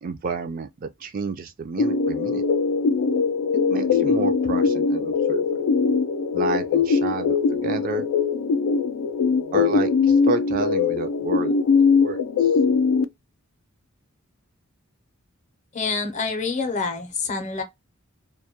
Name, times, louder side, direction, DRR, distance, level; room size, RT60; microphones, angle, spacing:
voice 1, 0.0-2.5 3.7-5.4 6.3-8.0 9.5-11.5 12.0-12.5, right 5 dB, 40° right, 0.3 m, -30 dB
sound 1, 1.8-13.0, left 5 dB, 85° left, 0.3 m, -21 dB
voice 2, 15.7-17.6, left 4 dB, 35° left, 0.5 m, -27 dB
2.2 x 2.1 x 2.7 m
head